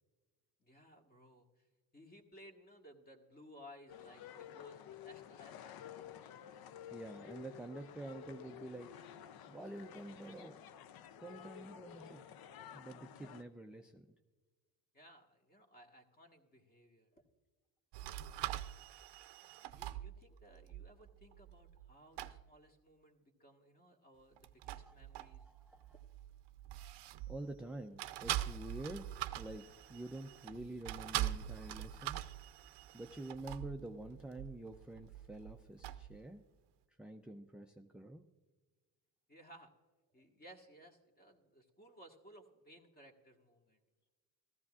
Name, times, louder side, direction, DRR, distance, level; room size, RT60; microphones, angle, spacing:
voice 1, 0.6-1.7 1.9-6.1 14.9-17.2 19.4-25.4 25.9-26.0 39.3-39.7 40.1-43.8, equal, 20° left, 3 dB, 1.5 m, -60 dB
sound 1, 3.9-13.4, left 9 dB, 60° left, 0.6 m, -52 dB
voice 2, 6.9-8.9 9.5-10.6 11.2-12.2 12.7-14.1 24.9-25.0 25.3-25.8 27.3-29.6 29.9-32.3 32.9-36.4 37.0-38.2, right 1 dB, ahead, 5 dB, 0.4 m, -48 dB
sound 2, 17.9-21.9 22.2-22.4 24.4-27.6 28.0-36.2, right 13 dB, 75° right, 0.6 m, -44 dB
15.0 x 13.5 x 2.4 m, 1.4 s
cardioid pair, 90°, 42 cm